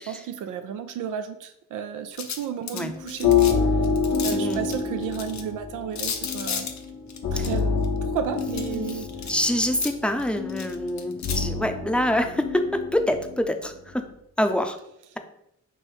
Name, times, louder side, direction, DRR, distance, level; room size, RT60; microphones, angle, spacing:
voice 1, 0.0-3.3 4.2-6.7 7.3-7.6 8.0-9.1, right 8 dB, 70° right, 8 dB, 0.5 m, -32 dB
sound 1, 2.2-3.5 3.8-5.4 6.0-7.9 8.4-9.9 10.2-11.4, left 7 dB, 60° left, 0.7 m, -33 dB
sound 2, 2.8-13.9, left 5 dB, 75° left, 1.2 m, -27 dB
voice 2, 4.3-4.7 7.4-7.5 8.7-8.9 9.3-14.1 14.4-14.8, left 1 dB, 5° left, 7 dB, 0.6 m, -26 dB
3.4 x 3.0 x 4.5 m, 0.74 s
supercardioid pair, 45°, 32 cm